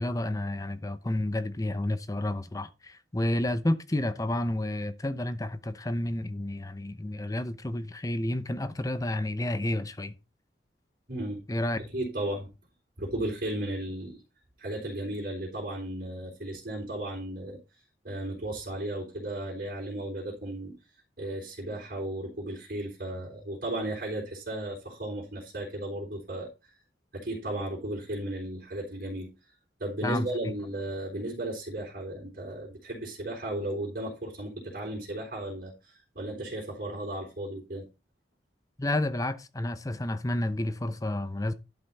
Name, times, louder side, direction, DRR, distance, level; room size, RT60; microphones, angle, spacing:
voice 1, 0.0-10.1 11.5-11.8 30.0-30.3 38.8-41.5, left 1 dB, 20° left, 0.7 m, -30 dB
voice 2, 11.1-11.4 11.8-12.5 13.0-14.2 14.6-17.6 18.0-20.7 21.2-26.5 27.1-29.3 29.8-37.9, right 1 dB, 60° right, 3.9 m, -35 dB
11.5 x 5.6 x 4.1 m
head